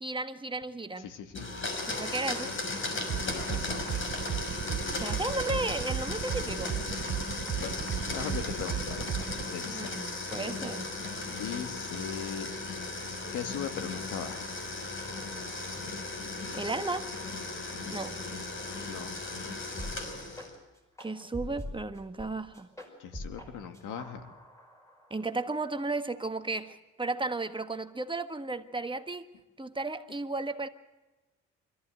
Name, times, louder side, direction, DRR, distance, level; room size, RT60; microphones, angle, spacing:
voice 1, 0.0-1.1 1.9-2.5 4.9-6.8 9.7-10.9 16.5-17.1 17.9-18.2 21.0-22.7 25.1-29.2 29.6-30.7, right 2 dB, 15° right, 1.5 m, -34 dB
voice 2, 1.0-1.5 3.2-3.8 7.6-7.8 8.1-10.0 11.4-12.5 13.3-14.5 18.9-19.2 23.0-24.3, left 8 dB, 90° left, 2.1 m, -39 dB
Domestic sounds home sounds, 1.3-20.6, left 3 dB, 40° left, 5.8 m, -36 dB
sound 1, 3.1-9.4, right 10 dB, 45° right, 0.7 m, -34 dB
sound 2, 19.8-20.0 20.3-20.5 21.0-22.3 22.5-23.5 23.7-25.3, left 1 dB, 10° left, 5.5 m, -42 dB
25.5 x 14.0 x 7.8 m
cardioid pair, 90°, 30 cm